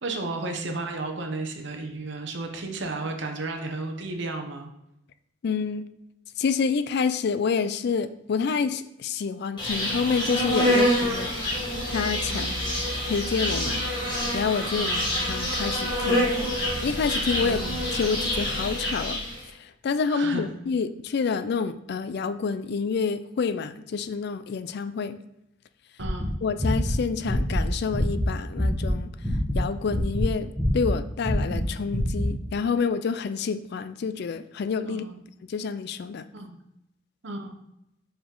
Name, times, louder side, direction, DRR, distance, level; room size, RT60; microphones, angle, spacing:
voice 1, 0.0-4.7 12.3-12.6 14.7-15.1 17.4-17.8 20.1-20.4 26.0-26.3 34.9-35.2 36.3-36.6 37.2-37.6, right 2 dB, 65° right, 4 dB, 0.9 m, -33 dB
voice 2, 5.4-5.9 6.4-11.3 11.9-12.5 13.0-13.8 14.3-14.9 15.3-16.4 16.8-17.6 17.9-19.2 19.6-25.2 26.4-29.1 29.5-35.0 35.5-36.3, left 5 dB, 55° left, 12 dB, 0.4 m, -28 dB
Insect, 9.6-19.4, equal, 25° left, 1.8 m, -26 dB
sound 1, 26.0-28.9 29.2-31.6 31.9-32.3, equal, ahead, 1.3 m, -25 dB
5.1 x 4.9 x 3.8 m, 0.83 s
head